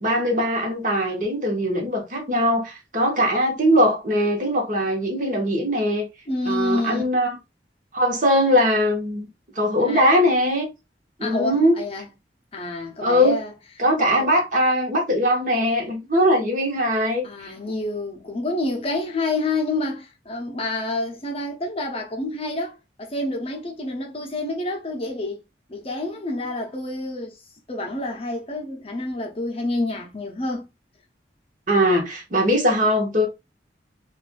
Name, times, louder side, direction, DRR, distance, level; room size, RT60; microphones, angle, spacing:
voice 1, 0.0-6.1 6.5-7.4 7.9-9.3 9.6-10.7 11.2-11.8 13.0-13.4 13.8-17.5 31.7-33.3, equal, 45° right, 1.0 m, -21 dB
voice 2, 6.3-7.0 9.8-10.0 11.2-12.1 12.5-13.5 14.0-14.3 17.2-25.4 25.7-27.4 27.7-30.7, left 2 dB, 30° left, 0.6 m, -28 dB
4.2 x 2.4 x 2.2 m
head